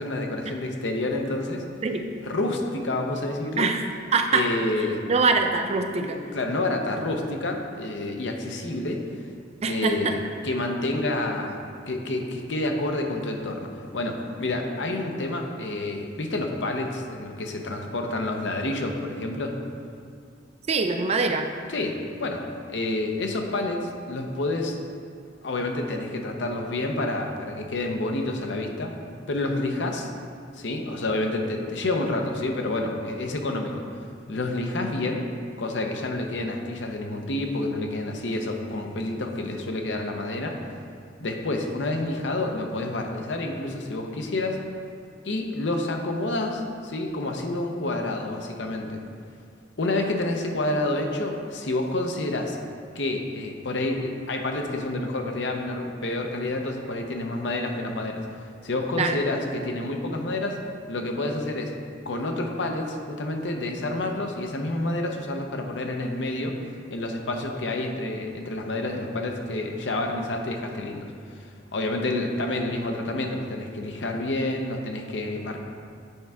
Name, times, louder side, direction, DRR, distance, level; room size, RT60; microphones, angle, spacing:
voice 1, 0.0-1.6 2.2-3.7 4.3-5.0 6.0-9.0 9.7-19.6 21.7-22.4 22.7-24.8 25.4-28.9 29.3-30.1 30.5-33.8 34.3-35.3 35.6-40.6 41.2-44.6 45.2-49.0 49.8-52.6 52.9-58.2 58.6-60.6 60.9-61.7 62.1-66.6 66.9-75.6, left 2 dB, 70° left, 3 dB, 0.7 m, -29 dB
voice 2, 4.1-4.5 5.0-6.2 9.6-10.2 20.7-21.5 59.0-59.2, right 4 dB, 35° right, 5 dB, 0.4 m, -23 dB
8.2 x 4.5 x 3.6 m, 2.2 s
head